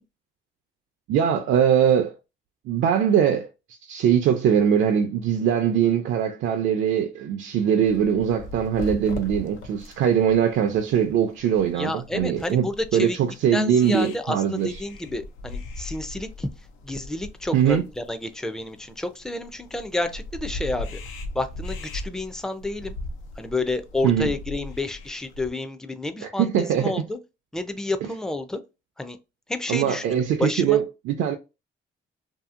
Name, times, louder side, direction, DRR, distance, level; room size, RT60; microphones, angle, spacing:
voice 1, 1.1-2.1 2.7-3.5 3.8-12.7 12.9-14.7 17.5-17.8 24.0-24.3 26.2-27.0 29.7-31.3, right 8 dB, 75° right, 0.5 m, -21 dB
sound 1, 7.8-25.5, left 2 dB, 90° left, 0.5 m, -39 dB
voice 2, 11.7-13.2 13.5-16.5 16.8-21.0 21.3-22.9 23.4-27.2 27.5-28.6 29.0-29.2 29.5-30.8, left 2 dB, 5° left, 0.4 m, -30 dB
2.7 x 2.7 x 2.4 m
cardioid pair, 90°, 20 cm